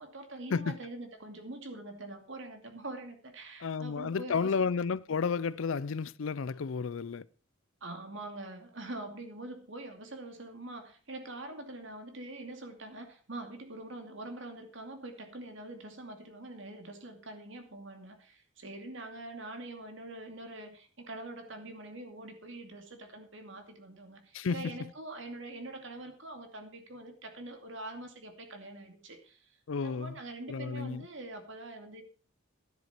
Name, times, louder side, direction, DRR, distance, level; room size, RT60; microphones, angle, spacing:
voice 1, 0.0-4.7 7.8-32.0, right 2 dB, 60° right, 2.6 m, -44 dB
voice 2, 3.6-7.3 24.3-24.8 29.7-30.1 30.5-31.0, left 5 dB, 70° left, 0.5 m, -32 dB
12.5 x 10.5 x 4.4 m
head